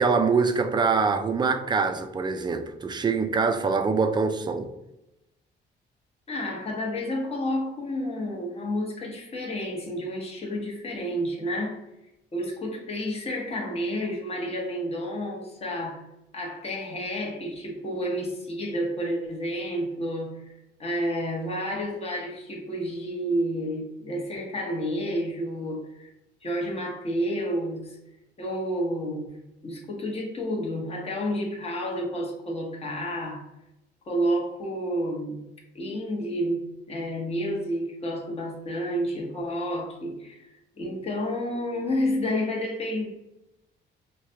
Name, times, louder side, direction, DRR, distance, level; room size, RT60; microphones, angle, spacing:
voice 1, 0.0-4.7, right 4 dB, 25° right, 8 dB, 0.4 m, -24 dB
voice 2, 6.3-11.8 12.3-16.0 16.3-20.5 20.8-26.1 26.4-28.0 28.4-29.4 29.6-33.4 34.0-35.4 35.7-40.5 40.8-43.1, equal, 30° left, -2 dB, 1.0 m, -30 dB
4.7 x 2.2 x 2.8 m, 0.90 s
cardioid pair, 110°, 19 cm